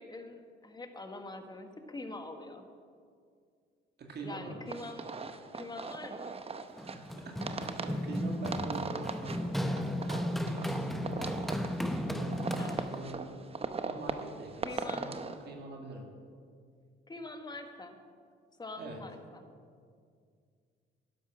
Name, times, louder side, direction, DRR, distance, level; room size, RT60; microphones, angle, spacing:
voice 1, 0.0-2.6 4.2-5.1 5.5-6.4 12.5-12.9 14.6-15.1 17.1-18.0 18.6-19.5, left 2 dB, 20° left, 6 dB, 1.5 m, -44 dB
voice 2, 4.0-4.6 6.8-13.4 13.8-16.1 18.8-19.0, right 2 dB, 55° right, 1 dB, 2.1 m, -44 dB
sound 1, 4.7-15.4, right 4 dB, 30° right, 0.8 m, -40 dB
Run, 6.8-13.2, equal, ahead, 0.8 m, -35 dB
11.5 x 10.5 x 6.1 m, 2.2 s
cardioid pair, 90°, 20 cm